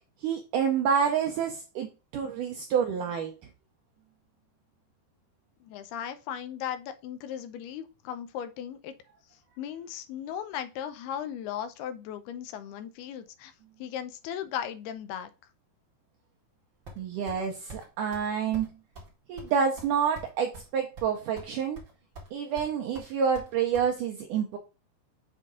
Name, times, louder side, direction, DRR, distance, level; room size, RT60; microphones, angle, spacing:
voice 1, 0.2-3.3 17.0-18.7 19.3-21.8 22.3-24.6, right 7 dB, 90° right, 3 dB, 1.8 m, -28 dB
voice 2, 5.6-9.0 9.3-13.5 13.8-15.3, left 9 dB, 80° left, 10 dB, 2.7 m, -37 dB
sound 1, 16.9-17.4 17.7-17.9 18.1-18.3 18.5-18.7 19.0-19.1 19.4-20.7 21.0-21.5 21.8-22.3 22.6-23.9, right 2 dB, 35° right, 2.4 m, -45 dB
7.5 x 3.9 x 3.7 m, 0.30 s
omnidirectional pair, 4.7 m